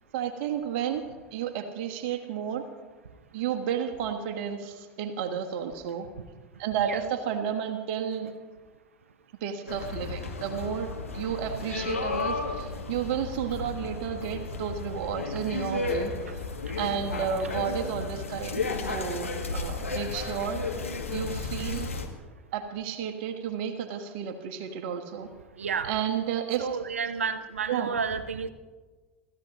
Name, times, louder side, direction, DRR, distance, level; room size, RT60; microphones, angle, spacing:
voice 1, 0.1-1.0 1.3-2.6 3.3-6.1 6.6-8.3 9.4-10.9 11.1-16.1 16.8-20.6 21.1-21.9 22.5-25.3 25.8-26.7 27.7-27.9, right 8 dB, 60° right, 6 dB, 1.4 m, -32 dB
sound 1, 9.7-22.1, left 4 dB, 90° left, 1.6 m, -33 dB
voice 2, 25.6-25.9 26.6-28.5, right 6 dB, 80° right, 12 dB, 0.9 m, -30 dB
27.0 x 14.5 x 3.0 m, 1.3 s
figure-of-eight pair, 80°, 7 cm